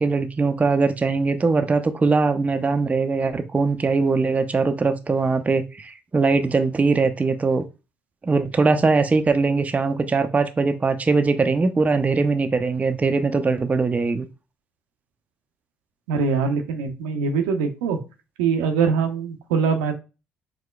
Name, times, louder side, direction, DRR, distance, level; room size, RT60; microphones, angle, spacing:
voice 1, 0.0-7.6 8.2-14.3, right 4 dB, 25° right, 0.4 m, -21 dB
voice 2, 16.1-18.0 18.4-19.9, right 5 dB, 75° right, 0.5 m, -23 dB
4.4 x 2.1 x 2.2 m
hypercardioid pair, 50°, 6 cm